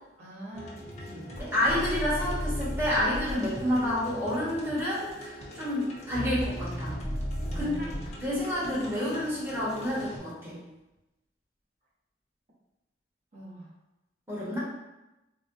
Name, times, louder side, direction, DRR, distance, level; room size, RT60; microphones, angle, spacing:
voice 1, 0.2-1.3 7.5-8.1 13.3-13.7, right 1 dB, 40° right, -7 dB, 1.1 m, -44 dB
sound 1, 0.5-10.2, equal, 40° left, 0.7 m, -37 dB
voice 2, 1.4-7.0 7.5-7.9 8.2-10.6 14.3-14.6, left 1 dB, 15° right, -8 dB, 1.1 m, -29 dB
4.1 x 2.1 x 2.6 m, 0.98 s
head